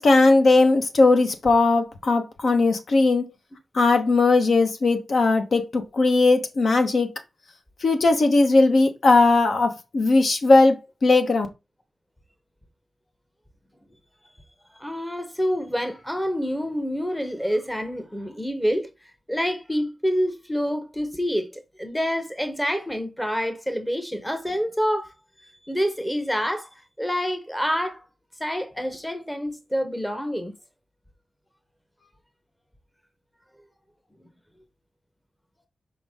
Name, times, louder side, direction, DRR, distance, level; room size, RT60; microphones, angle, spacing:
voice 1, 0.0-3.3 3.7-7.1 7.8-10.8 11.0-11.5, left 3 dB, 60° left, 1.1 m, -18 dB
voice 2, 14.7-18.9 19.3-28.0 28.4-30.5 32.0-32.1, equal, 5° left, 0.9 m, -27 dB
6.0 x 5.1 x 3.6 m
wide cardioid pair, 155°, 0 cm